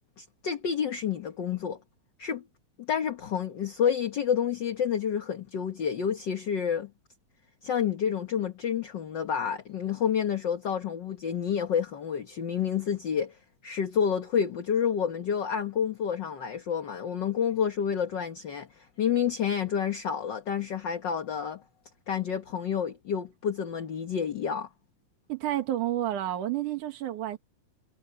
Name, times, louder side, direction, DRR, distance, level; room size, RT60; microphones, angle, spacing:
voice 1, 0.2-1.8 2.2-2.4 2.9-6.9 7.6-13.4 13.6-21.6 22.1-24.7, left 8 dB, 50° left, 1.4 m, -29 dB
voice 2, 25.3-27.4, right 12 dB, 85° right, 3.1 m, -30 dB
omnidirectional pair, 3.5 m